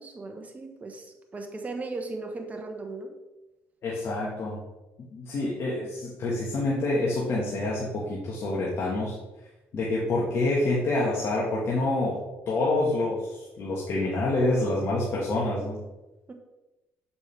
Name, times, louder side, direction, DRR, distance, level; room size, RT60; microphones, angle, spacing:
voice 1, 0.0-3.1 16.3-16.4, right 3 dB, 30° right, 4 dB, 1.2 m, -37 dB
voice 2, 3.8-4.6 5.1-9.2 9.7-12.2 12.5-15.8, left 2 dB, 55° left, -5 dB, 1.4 m, -27 dB
6.9 x 5.1 x 3.3 m, 1.0 s
supercardioid pair, 85°, 5 cm